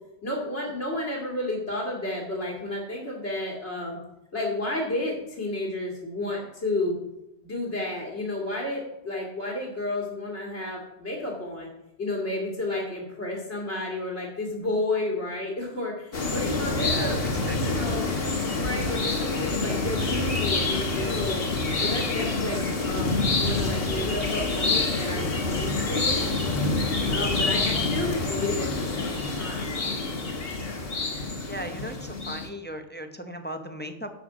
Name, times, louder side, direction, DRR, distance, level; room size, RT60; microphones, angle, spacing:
voice 1, 0.2-4.0 4.3-7.0 7.4-11.7 12.0-17.2 17.6-18.1 18.6-21.4 21.8-26.4 27.1-29.8, left 2 dB, 75° left, -2 dB, 2.5 m, -31 dB
sound 1, 16.1-32.5, left 3 dB, 60° left, 1.6 m, -27 dB
voice 2, 16.8-17.1 17.5-17.9 31.4-34.1, right 1 dB, 10° left, 6 dB, 0.7 m, -37 dB
11.5 x 7.0 x 4.9 m, 0.92 s
omnidirectional pair, 1.1 m